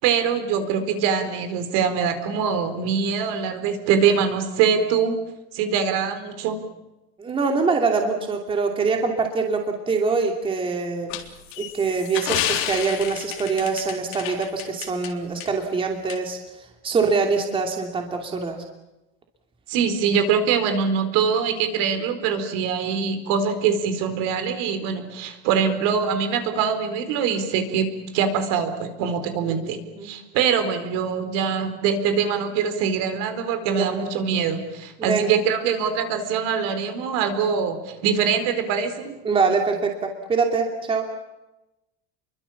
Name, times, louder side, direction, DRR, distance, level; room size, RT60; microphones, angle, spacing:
voice 1, 0.0-5.2 5.5-6.6 19.7-39.2, right 6 dB, 55° right, 8 dB, 4.3 m, -23 dB
voice 2, 7.2-11.1 11.6-18.6 30.0-30.1 33.6-34.0 35.0-35.3 39.2-41.0, right 4 dB, 15° right, 3 dB, 2.9 m, -24 dB
sound 1, 11.1-15.1 15.4-15.5 16.1-16.2, left 12 dB, 60° left, 3.7 m, -30 dB
29.5 x 23.5 x 7.3 m, 0.98 s
cardioid pair, 160°, 30 cm